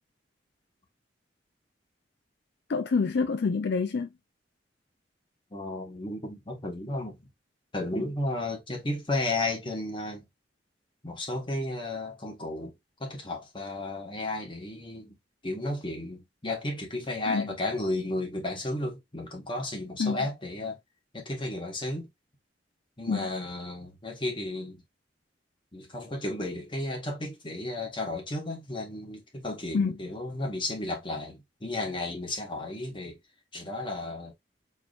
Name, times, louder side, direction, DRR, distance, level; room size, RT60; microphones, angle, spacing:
voice 1, 2.7-4.1 17.2-17.5 20.0-20.2 23.1-23.3 29.7-29.9, left 4 dB, 65° left, 0.4 m, -27 dB
voice 2, 5.5-7.3 7.7-10.2 11.0-12.7 13.0-15.1 15.4-20.8 21.1-22.1 23.0-24.8 25.7-33.2 33.5-34.3, left 2 dB, 30° left, 1.5 m, -33 dB
4.6 x 3.0 x 2.5 m
head